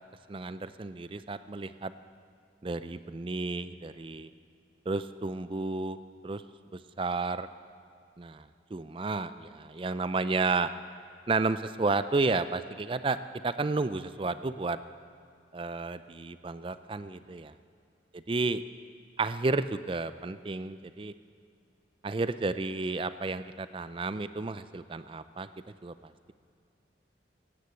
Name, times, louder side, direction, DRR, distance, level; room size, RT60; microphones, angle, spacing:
voice 1, 0.3-1.9 2.6-4.3 4.9-6.0 6.2-6.4 7.0-7.5 8.2-8.4 8.7-10.7 11.3-13.2 13.4-14.8 15.5-17.5 18.1-18.6 19.2-21.1 22.0-25.5 25.8-26.3, right 3 dB, 30° right, 13 dB, 0.4 m, -32 dB
16.5 x 9.7 x 7.8 m, 2.4 s
head